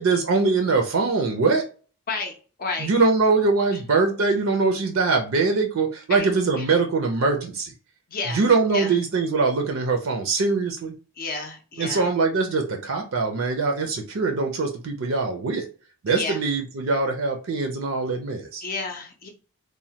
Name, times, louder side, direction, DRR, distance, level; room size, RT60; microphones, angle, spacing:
voice 1, 0.0-1.7 2.8-7.7 8.3-10.9 11.8-15.7 16.0-18.6, right 4 dB, 65° right, 4 dB, 0.5 m, -22 dB
voice 2, 8.1-8.4 8.7-9.0 11.2-12.1 16.1-16.4 18.6-19.3, left 3 dB, 40° left, 2 dB, 0.5 m, -31 dB
3.1 x 2.1 x 2.8 m, 0.37 s
head